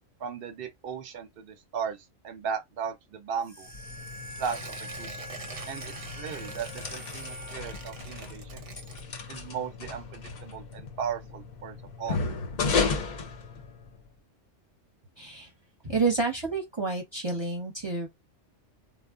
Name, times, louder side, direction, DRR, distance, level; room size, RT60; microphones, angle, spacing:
voice 1, 0.2-3.7 4.4-5.2 5.7-8.6 9.3-12.2, right 7 dB, 60° right, 0.7 m, -36 dB
sound 1, 3.4-8.1, equal, 10° left, 0.6 m, -44 dB
sound 2, 3.6-14.1, left 4 dB, 50° left, 0.6 m, -35 dB
Tearing, 4.4-9.5 9.8-9.9, right 4 dB, 90° right, 1.1 m, -45 dB
voice 2, 15.2-15.5 15.8-18.1, right 4 dB, 25° right, 0.7 m, -29 dB
2.1 x 2.0 x 3.5 m
omnidirectional pair, 1.2 m